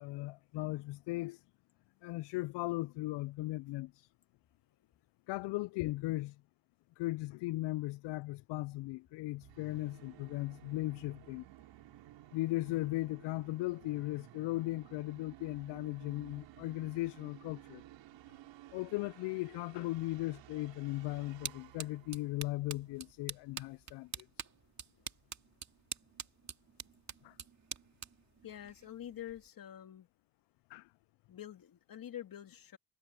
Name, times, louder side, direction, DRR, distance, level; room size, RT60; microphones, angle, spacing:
voice 1, 0.0-1.4 2.0-4.1 5.3-6.4 7.0-11.4 12.3-17.8 18.7-24.5 27.2-27.4 30.7-30.9, left 19 dB, 70° left, 0.5 m, -37 dB
Musical instrument, 9.4-23.1, right 15 dB, 80° right, 4.0 m, -56 dB
sound 1, 20.8-29.5, right 7 dB, 40° right, 2.3 m, -48 dB
voice 2, 28.4-30.1 31.3-32.8, left 11 dB, 50° left, 2.5 m, -47 dB
cardioid pair, 95°, 43 cm